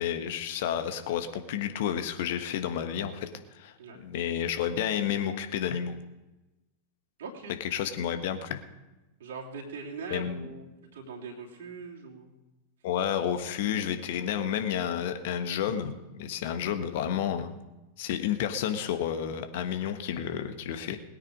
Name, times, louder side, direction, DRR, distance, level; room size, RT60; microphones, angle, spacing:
voice 1, 0.0-3.3 3.5-5.9 7.6-8.6 10.1-10.5 12.8-17.6 18.0-21.0, left 9 dB, 50° left, 8 dB, 1.4 m, -31 dB
voice 2, 7.2-7.5 9.2-12.3, right 4 dB, 60° right, -2 dB, 2.9 m, -41 dB
20.5 x 9.2 x 5.1 m, 1.0 s
figure-of-eight pair, 90°, 0 cm